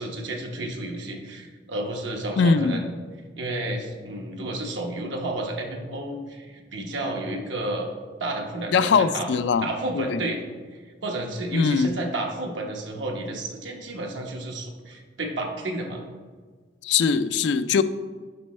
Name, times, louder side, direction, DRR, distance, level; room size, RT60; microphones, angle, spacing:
voice 1, 0.0-2.8 3.4-7.9 8.2-9.3 9.6-10.4 10.7-16.0, right 2 dB, 85° right, 1 dB, 1.0 m, -31 dB
voice 2, 2.4-2.8 8.7-9.7 9.9-10.2 11.5-11.9 16.8-17.8, left 5 dB, 65° left, 12 dB, 0.3 m, -21 dB
7.7 x 5.3 x 3.1 m, 1.5 s
head